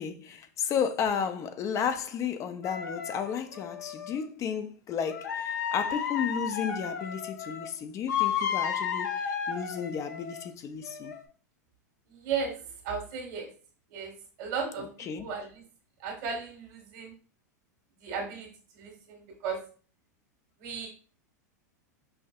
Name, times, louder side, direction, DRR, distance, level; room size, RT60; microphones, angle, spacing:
voice 1, 0.0-11.1 15.1-15.3, left 7 dB, 30° left, 0.4 m, -33 dB
sound 1, 2.6-4.1 5.1-7.7 8.1-10.4 10.8-11.2, left 8 dB, 80° left, 0.7 m, -33 dB
voice 2, 12.1-12.5 12.8-13.5 13.9-14.1 14.4-15.6 16.0-17.1 18.0-18.5 18.7-19.6 20.6-20.9, right 5 dB, 60° right, 1.5 m, -35 dB
5.5 x 2.6 x 2.3 m
hypercardioid pair, 105°, 10 cm